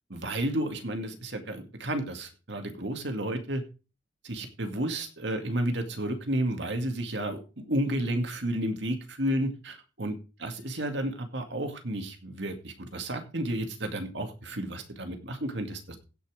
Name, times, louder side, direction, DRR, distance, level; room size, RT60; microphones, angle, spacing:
voice 1, 0.1-3.6 4.2-16.0, right 1 dB, 65° right, 5 dB, 2.2 m, -32 dB
16.5 x 5.8 x 4.9 m, 0.33 s
head